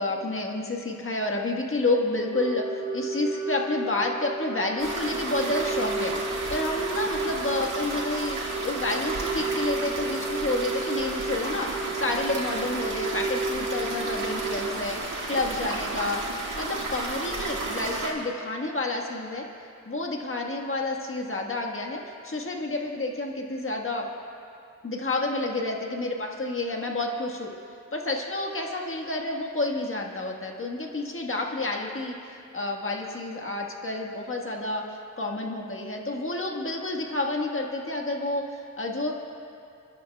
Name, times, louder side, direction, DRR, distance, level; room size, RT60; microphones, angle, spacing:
voice 1, 0.0-8.4 8.6-11.7 12.0-15.0 15.3-16.2 16.6-19.4 19.8-24.1 24.8-27.5 27.9-39.1, left 2 dB, 40° left, 1 dB, 1.6 m, -29 dB
sound 1, 2.3-14.7, right 3 dB, 50° right, 1.0 m, -33 dB
sound 2, 4.8-18.1, right 3 dB, 85° right, 1.9 m, -33 dB
30.0 x 11.5 x 2.4 m, 2.5 s
cardioid pair, 70°, 31 cm